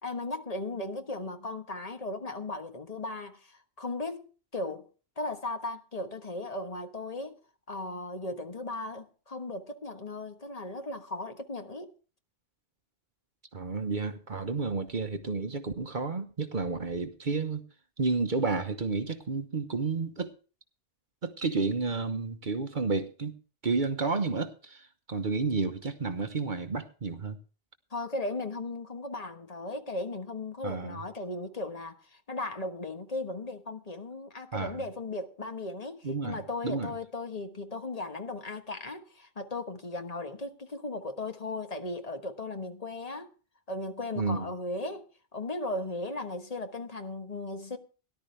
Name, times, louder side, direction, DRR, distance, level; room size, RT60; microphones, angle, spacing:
voice 1, 0.0-4.9 5.2-7.4 7.7-11.9 27.9-43.3 43.7-47.8, left 2 dB, 40° left, 1.4 m, -37 dB
voice 2, 13.5-17.6 18.0-20.3 21.2-23.4 23.6-27.4 30.6-31.0 34.5-34.8 36.0-36.9 44.2-44.5, right 4 dB, 50° right, 1.2 m, -31 dB
18.0 x 11.5 x 3.3 m
omnidirectional pair, 1.0 m